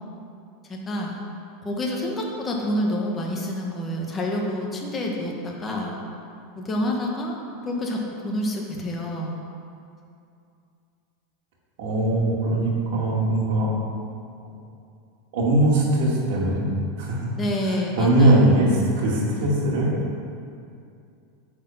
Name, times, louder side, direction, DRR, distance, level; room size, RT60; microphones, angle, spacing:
voice 1, 0.7-1.2 1.6-6.0 6.6-7.4 7.6-9.4 17.4-18.4, left 1 dB, 20° left, -1 dB, 1.2 m, -28 dB
voice 2, 11.8-13.7 15.3-16.6 17.0-17.3 17.6-19.9, right 1 dB, 65° right, -4 dB, 2.1 m, -21 dB
9.1 x 4.3 x 5.7 m, 2.5 s
supercardioid pair, 145°, 0 cm